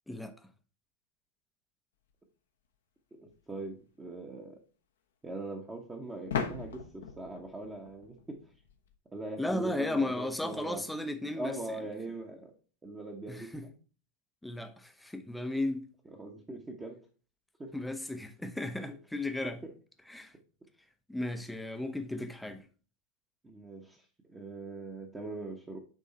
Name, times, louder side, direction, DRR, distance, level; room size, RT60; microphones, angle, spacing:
sound 1, 3.3-3.4 6.3-8.9, left 6 dB, 65° left, 0.9 m, -38 dB
voice 1, 3.5-4.6 5.2-8.4 9.1-10.8 11.3-12.5 12.8-13.7 16.0-17.0 17.6-17.7 19.6-19.7 23.4-25.8, right 2 dB, 15° right, 1.2 m, -41 dB
voice 2, 9.4-11.6 13.3-13.6 14.4-15.9 17.7-19.6 20.1-20.3 21.1-22.6, left 2 dB, 5° left, 0.8 m, -35 dB
9.3 x 3.7 x 4.2 m
figure-of-eight pair, 90°, 0 cm